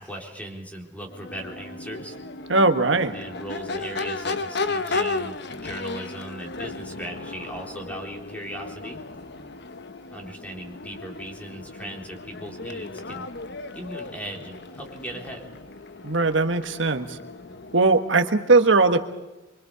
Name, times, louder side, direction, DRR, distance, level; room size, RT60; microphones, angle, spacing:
voice 1, 0.0-2.1 3.1-9.0 10.1-13.3 13.7-15.4, right 1 dB, 10° left, 1 dB, 3.9 m, -38 dB
Crowd / Race car auto racing / Accelerating revving vroom, 1.1-18.2, left 3 dB, 65° left, 1.2 m, -35 dB
voice 2, 2.5-3.2 16.0-17.2 17.7-19.0, right 3 dB, 85° right, 6 dB, 1.5 m, -19 dB
25.0 x 25.0 x 5.0 m, 1.0 s
head